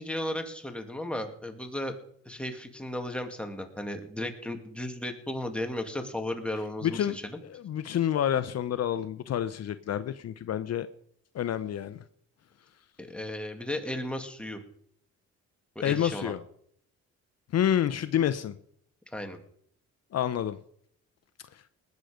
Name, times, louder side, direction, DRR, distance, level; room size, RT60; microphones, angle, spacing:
voice 1, 0.0-1.9 2.2-7.4 13.0-14.6 15.8-16.3 19.1-19.4, left 1 dB, 5° left, 4 dB, 2.4 m, -35 dB
voice 2, 6.8-7.2 7.4-10.9 11.3-12.0 15.8-16.4 17.5-18.5 20.1-20.6 21.5-21.6, left 10 dB, 55° left, 12 dB, 0.8 m, -28 dB
19.5 x 9.4 x 5.1 m, 0.66 s
cardioid pair, 90°, 30 cm